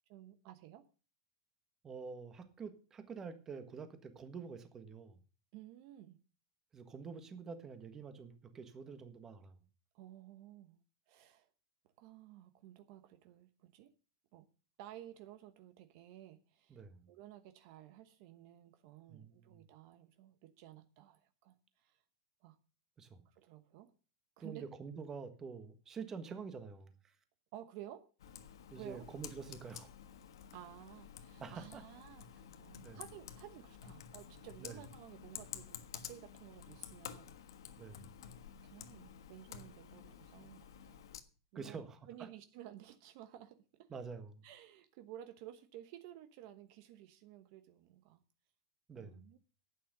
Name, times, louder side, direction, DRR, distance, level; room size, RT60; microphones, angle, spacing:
voice 1, 0.1-0.8 5.5-6.2 9.9-10.8 11.1-11.5 12.0-13.9 14.3-14.5 14.8-16.8 17.1-22.0 22.4-22.6 23.2-23.9 24.4-24.6 27.5-28.0 28.8-29.0 30.5-37.4 38.2-41.0 41.5-43.9 44.4-48.2 49.0-49.4, right 12 dB, 50° right, 1.1 m, -54 dB
voice 2, 1.8-5.2 6.7-9.5 16.7-17.1 19.1-19.6 23.0-23.3 24.4-27.1 28.7-29.9 31.4-31.8 32.8-33.0 34.6-34.8 37.8-38.1 41.5-42.3 43.9-44.3 48.9-49.3, right 5 dB, 20° right, 1.5 m, -47 dB
Computer keyboard, 28.2-41.2, left 8 dB, 90° left, 1.4 m, -51 dB
11.5 x 8.8 x 6.7 m
supercardioid pair, 150°, 2 cm